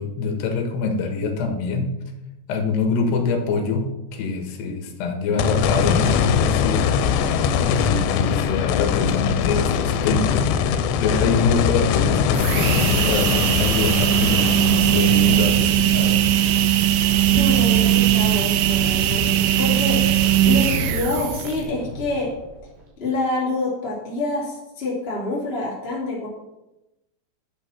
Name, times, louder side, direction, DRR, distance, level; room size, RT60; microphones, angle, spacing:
voice 1, 0.0-1.9 2.5-7.0 7.6-10.4 11.0-16.2 20.5-20.6, left 4 dB, 70° left, 4 dB, 3.6 m, -24 dB
sound 1, 5.4-17.7 18.2-18.3 21.6-21.7, left 7 dB, 90° left, 3.0 m, -22 dB
sound 2, 12.2-21.7, right 11 dB, 85° right, 3.0 m, -19 dB
voice 2, 17.3-20.0 20.4-22.3 23.0-26.3, left 2 dB, 15° left, -6 dB, 3.3 m, -26 dB
Wind, 17.3-22.9, right 1 dB, 55° right, 4.4 m, -36 dB
11.0 x 8.1 x 6.1 m, 0.95 s
omnidirectional pair, 5.1 m